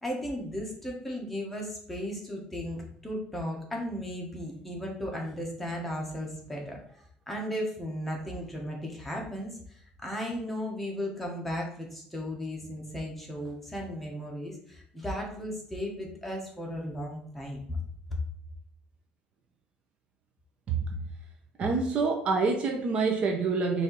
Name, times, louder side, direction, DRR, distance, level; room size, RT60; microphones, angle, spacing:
voice 1, 0.0-6.8 7.3-17.8, equal, 5° left, -1 dB, 1.1 m, -35 dB
voice 2, 21.6-23.8, right 4 dB, 40° right, 3 dB, 0.6 m, -26 dB
4.3 x 2.7 x 4.5 m, 0.62 s
cardioid pair, 155°, 3 cm